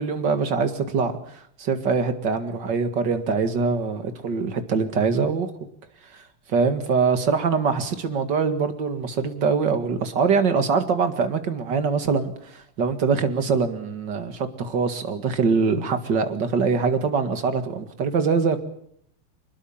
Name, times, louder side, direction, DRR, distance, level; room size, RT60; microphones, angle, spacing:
voice 1, 0.0-5.5 6.1-18.6, right 5 dB, 55° right, 2.6 m, -23 dB
25.0 x 21.0 x 7.3 m
omnidirectional pair, 2.4 m